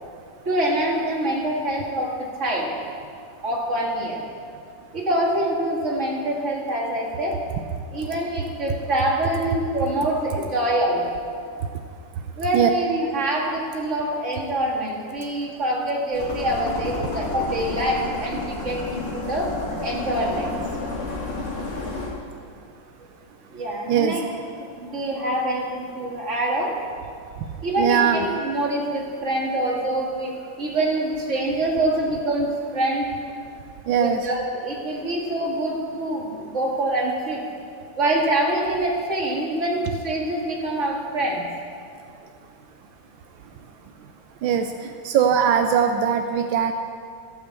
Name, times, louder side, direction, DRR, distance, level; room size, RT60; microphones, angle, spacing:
voice 1, 0.5-2.7 3.4-4.2 4.9-7.4 7.9-11.0 12.4-19.5 19.8-20.5 23.5-24.2 24.8-26.8 27.6-33.1 34.0-37.4 38.0-41.4, right 1 dB, 40° right, -2 dB, 2.3 m, -25 dB
sound 1, 16.1-22.1, left 3 dB, 35° left, 2.7 m, -31 dB
voice 2, 23.9-24.2 27.8-28.3 33.9-34.3 44.4-46.7, right 8 dB, 85° right, 6 dB, 1.4 m, -21 dB
15.5 x 6.1 x 7.6 m, 2.3 s
omnidirectional pair, 2.1 m